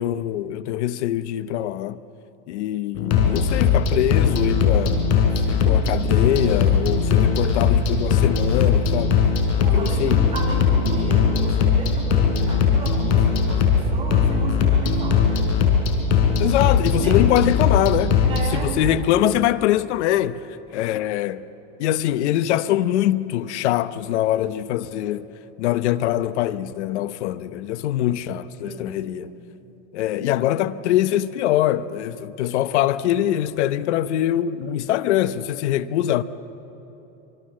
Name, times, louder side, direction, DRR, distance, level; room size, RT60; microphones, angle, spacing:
voice 1, 0.0-2.0 2.5-5.1 5.4-9.2 9.6-10.2 16.4-18.1 18.5-20.4 20.7-21.5 21.8-25.3 25.6-29.3 29.9-36.2, left 12 dB, 85° left, 0.9 m, -23 dB
sound 1, 2.9-18.4, left 6 dB, 60° left, 5.0 m, -19 dB
voice 2, 5.4-6.1 9.6-15.6 16.9-17.4 18.2-18.9 28.6-29.3 30.1-30.3, right 2 dB, 15° right, 6.3 m, -34 dB
26.0 x 26.0 x 7.6 m
supercardioid pair, 150°, 34 cm